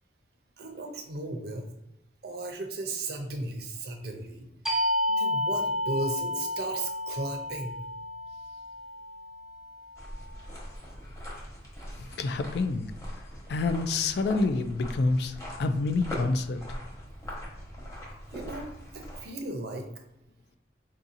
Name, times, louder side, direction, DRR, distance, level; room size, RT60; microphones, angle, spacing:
voice 1, 0.6-1.7 2.2-4.5 5.1-7.7 18.3-18.7 18.9-19.9, right 2 dB, 60° right, 4 dB, 0.6 m, -35 dB
sound 1, 4.7-10.0, left 1 dB, 5° right, 0.7 m, -31 dB
sound 2, 9.9-19.2, equal, 20° left, 1.0 m, -41 dB
voice 2, 12.0-12.9 13.5-16.6, left 3 dB, 65° left, 10 dB, 0.3 m, -28 dB
4.6 x 2.8 x 2.5 m, 0.88 s
head